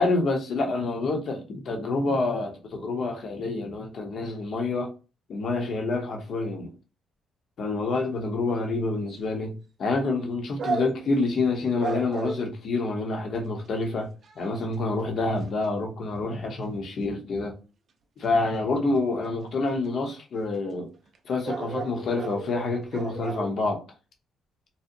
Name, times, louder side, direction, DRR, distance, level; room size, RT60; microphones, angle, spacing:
voice 1, 0.0-4.9 5.3-6.7 7.6-14.1 14.4-17.5 18.2-20.9 21.2-23.8, left 3 dB, 60° left, 0.7 m, -27 dB
sound 1, 9.1-9.2 10.6-11.2 11.8-12.5 13.4-13.5 13.9-14.0 14.2-14.7 15.4-15.7 19.3-19.4 19.7-19.8 21.1-21.2 21.5-23.5, right 4 dB, 55° right, 0.4 m, -33 dB
2.7 x 2.0 x 2.5 m
cardioid pair, 90°, 0 cm